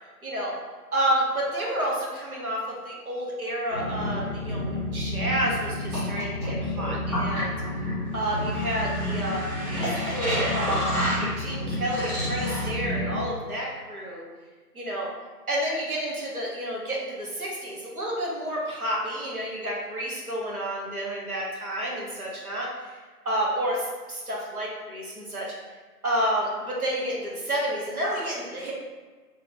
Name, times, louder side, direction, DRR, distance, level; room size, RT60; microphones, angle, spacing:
voice 1, 0.2-0.5 0.9-7.5 8.1-14.2 14.7-15.1 15.5-23.0 23.2-25.5 26.0-28.7, right 1 dB, 60° right, -4 dB, 1.2 m, -30 dB
sound 1, 3.7-13.2, left 1 dB, 25° right, 1.4 m, -29 dB
3.2 x 2.9 x 4.0 m, 1.4 s
figure-of-eight pair, 160°, 48 cm